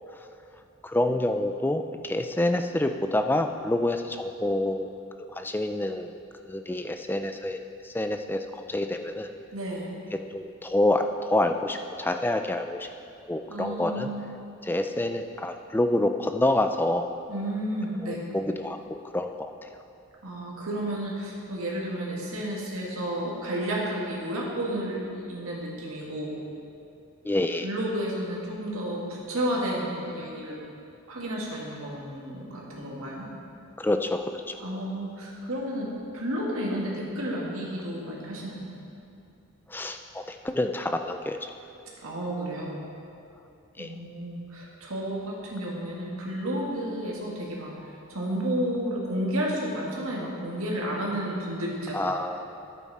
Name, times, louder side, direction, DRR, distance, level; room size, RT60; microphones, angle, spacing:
voice 1, 0.8-4.9 5.3-6.1 6.5-9.3 10.3-12.9 13.3-14.1 14.6-17.1 18.0-19.5 27.2-27.7 33.8-34.6 39.7-41.5 43.8-43.9 51.9-52.5, left 1 dB, 10° left, 7 dB, 0.3 m, -27 dB
voice 2, 9.5-10.0 13.5-14.3 17.3-18.2 20.2-26.4 27.6-30.6 31.1-33.3 34.6-35.9 36.1-38.7 42.0-42.8 43.8-47.7 48.1-52.0, right 1 dB, 70° right, -4 dB, 2.0 m, -31 dB
10.5 x 8.4 x 4.2 m, 2.7 s
head